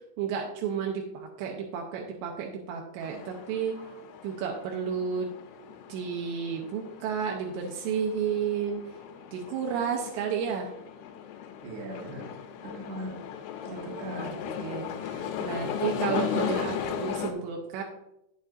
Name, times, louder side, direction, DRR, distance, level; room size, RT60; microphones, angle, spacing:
voice 1, 0.2-3.8 4.2-5.3 5.9-8.9 9.3-10.7 13.6-13.8 14.1-17.8, right 7 dB, 80° right, 1 dB, 2.6 m, -32 dB
sound 1, 3.0-17.3, left 8 dB, 85° left, 3.4 m, -37 dB
voice 2, 11.6-12.3 12.6-13.1 13.7-14.5 15.6-16.1, right 1 dB, 60° right, -1 dB, 3.4 m, -40 dB
9.0 x 7.2 x 2.5 m, 0.85 s
omnidirectional pair, 5.6 m